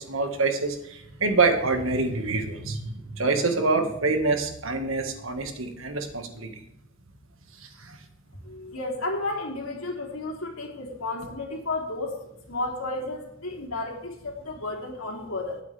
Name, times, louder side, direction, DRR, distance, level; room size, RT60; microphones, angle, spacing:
voice 1, 0.1-0.8 1.2-6.5, right 3 dB, 70° right, 5 dB, 1.8 m, -25 dB
voice 2, 8.4-12.2 12.5-15.6, left 2 dB, 85° left, 0 dB, 3.2 m, -32 dB
19.5 x 8.7 x 3.5 m, 0.81 s
head